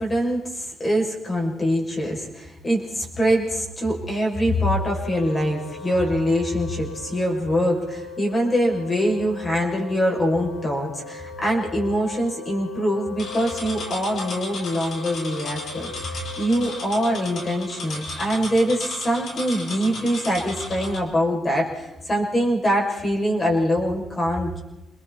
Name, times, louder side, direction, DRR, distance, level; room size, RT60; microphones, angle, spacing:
voice 1, 0.0-24.6, equal, 25° left, -1 dB, 6.7 m, -24 dB
Wind instrument woodwind instrument, 4.7-18.1, left 5 dB, 85° left, 4.1 m, -39 dB
sound 1, 13.2-21.0, left 2 dB, 60° left, 4.4 m, -35 dB
29.5 x 21.5 x 4.3 m, 1.0 s
cardioid pair, 90°, 0 cm